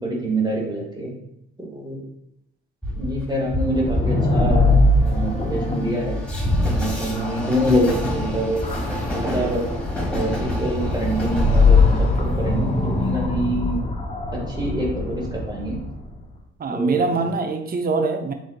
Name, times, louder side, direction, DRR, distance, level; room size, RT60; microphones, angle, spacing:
voice 1, 0.0-1.1 1.6-2.0 3.0-4.7 5.0-6.2 6.6-8.7 9.1-9.6 10.1-13.8 14.6-15.8 16.7-17.1, right 1 dB, 15° right, -2 dB, 1.4 m, -25 dB
Train, 2.8-13.2, left 1 dB, 5° left, 1.6 m, -28 dB
sound 1, 3.6-16.1, left 2 dB, 20° left, 0.6 m, -22 dB
voice 2, 16.6-18.3, right 3 dB, 30° right, 6 dB, 0.6 m, -23 dB
7.8 x 2.7 x 2.2 m, 0.80 s
cardioid pair, 90°, 30 cm